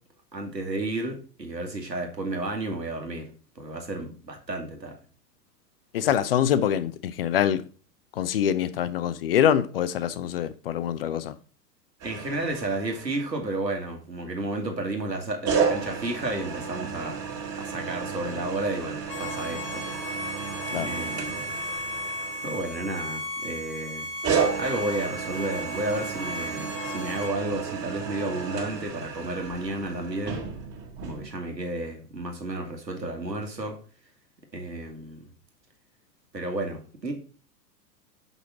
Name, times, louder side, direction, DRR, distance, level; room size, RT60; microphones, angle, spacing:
voice 1, 0.3-3.3 3.6-5.0 12.0-17.2 17.5-19.8 20.8-21.5 22.4-24.1 24.6-30.4 31.0-33.8 34.5-35.3 36.3-37.1, right 2 dB, 80° right, 1.9 m, -32 dB
voice 2, 5.9-7.6 8.2-11.3 20.7-20.9, left 9 dB, 40° left, 0.5 m, -24 dB
sound 1, 12.0-13.5 15.4-23.3 24.2-31.3, right 6 dB, 30° right, 1.9 m, -32 dB
Bowed string instrument, 19.1-27.3, left 1 dB, 70° left, 1.6 m, -35 dB
6.3 x 5.3 x 4.1 m
figure-of-eight pair, 100°, 50 cm